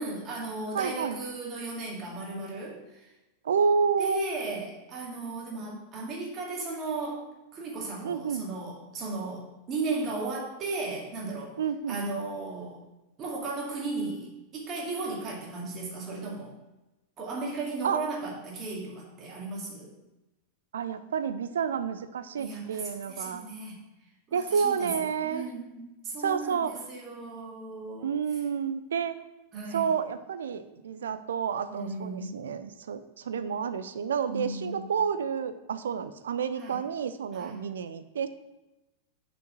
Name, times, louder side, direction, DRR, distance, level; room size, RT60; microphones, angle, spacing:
voice 1, 0.0-3.1 4.0-7.2 7.5-11.5 11.9-12.8 13.2-16.5 17.2-19.9 22.4-23.8 24.3-28.1 29.5-29.9 31.7-32.4 34.3-34.9 36.6-36.8 37.3-37.6, right 3 dB, 30° right, -2 dB, 2.2 m, -35 dB
voice 2, 0.7-1.2 3.4-4.2 8.0-8.4 11.6-12.0 17.8-18.0 20.7-23.5 24.3-25.5 26.2-26.7 28.0-29.2 29.7-38.3, right 6 dB, 65° right, 12 dB, 0.5 m, -30 dB
6.4 x 5.2 x 6.2 m, 1.0 s
figure-of-eight pair, 90°, 0 cm